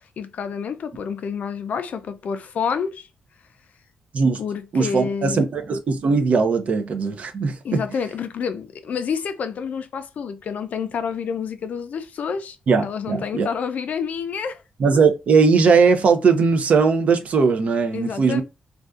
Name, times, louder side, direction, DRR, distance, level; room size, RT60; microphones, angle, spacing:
voice 1, 0.2-3.1 4.4-5.5 7.6-12.6 12.8-14.6 17.9-18.4, left 6 dB, 60° left, 0.4 m, -28 dB
voice 2, 4.7-7.8 12.7-13.5 14.8-18.4, right 5 dB, 55° right, 0.5 m, -19 dB
2.5 x 2.2 x 2.3 m
wide cardioid pair, 130°, 3 cm